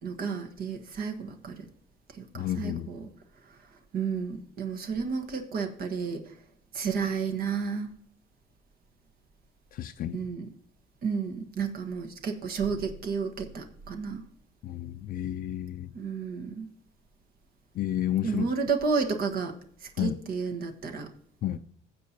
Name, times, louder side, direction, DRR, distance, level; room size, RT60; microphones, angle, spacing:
voice 1, 0.0-1.6 2.1-3.1 3.5-3.6 3.9-6.3 6.7-7.9 10.1-10.4 11.0-14.2 15.9-16.7 18.2-21.1, right 5 dB, 60° right, 5 dB, 1.4 m, -32 dB
voice 2, 2.3-2.9 9.7-10.2 14.6-15.9 17.7-18.5 20.0-20.2 21.4-21.6, left 12 dB, 60° left, 6 dB, 0.5 m, -31 dB
15.5 x 7.5 x 2.8 m, 0.63 s
cardioid pair, 110°, 17 cm